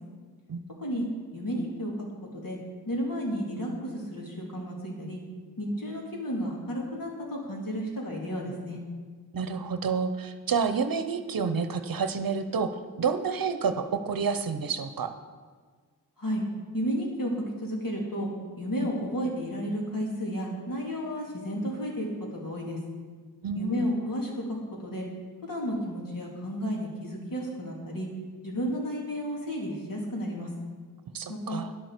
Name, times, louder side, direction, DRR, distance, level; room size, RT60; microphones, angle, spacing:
voice 1, 1.3-1.9 2.3-2.6 2.9-5.2 5.6-8.8 16.2-16.4 16.7-18.3 18.6-22.8 23.5-25.1 25.4-28.1 28.4-30.5 31.3-31.6, equal, 60° left, -2 dB, 3.3 m, -32 dB
voice 2, 9.3-15.1 23.4-24.1 31.1-31.7, right 5 dB, 60° right, 10 dB, 0.8 m, -29 dB
10.5 x 7.9 x 6.7 m, 1.5 s
cardioid pair, 55°, 38 cm